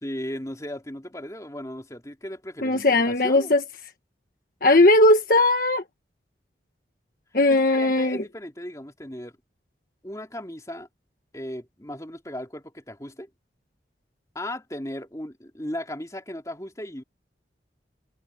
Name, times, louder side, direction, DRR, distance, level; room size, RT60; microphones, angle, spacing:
voice 1, 0.0-3.5 7.5-9.4 10.0-10.9 11.3-13.3 14.3-17.0, left 1 dB, 20° left, 3.3 m, -36 dB
voice 2, 2.6-3.6 4.6-5.8 7.3-8.2, left 2 dB, 50° left, 1.5 m, -18 dB
head